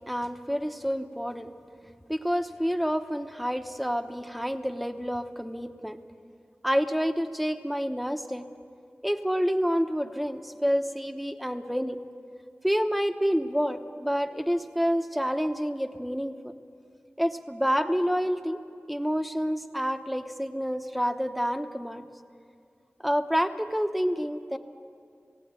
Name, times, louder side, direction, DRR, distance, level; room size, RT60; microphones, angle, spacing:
voice 1, 0.0-1.5 2.1-6.0 6.6-8.5 9.0-12.0 12.6-16.5 17.2-18.6 18.9-22.1 23.0-24.6, equal, ahead, 7 dB, 1.0 m, -28 dB
17.5 x 17.0 x 8.8 m, 2.3 s
wide cardioid pair, 55°, 5 cm